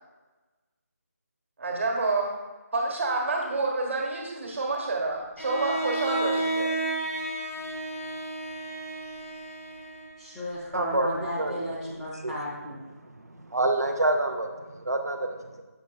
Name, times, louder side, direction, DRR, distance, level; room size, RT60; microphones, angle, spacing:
voice 1, 1.6-2.3 2.7-6.8, right 3 dB, 50° right, 0 dB, 1.3 m, -28 dB
Bowed string instrument, 5.4-10.4, right 2 dB, 70° left, 1.0 m, -32 dB
voice 2, 10.2-12.9, equal, 5° left, -10 dB, 0.4 m, -34 dB
voice 3, 10.7-11.9 12.1-12.3 13.5-14.5 14.8-15.6, right 2 dB, 80° right, 4 dB, 0.6 m, -27 dB
7.0 x 6.0 x 2.3 m, 1.2 s
figure-of-eight pair, 160°, 9 cm